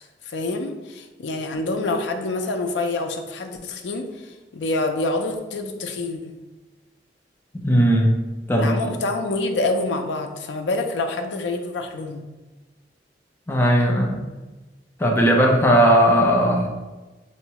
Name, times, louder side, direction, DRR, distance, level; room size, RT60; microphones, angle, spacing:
voice 1, 0.0-6.3 8.6-12.2, left 2 dB, 75° left, 5 dB, 0.4 m, -27 dB
voice 2, 7.5-8.1 8.5-8.9 13.5-14.2 15.0-16.7, equal, 15° left, 0 dB, 0.5 m, -17 dB
4.5 x 2.1 x 2.9 m, 1.2 s
head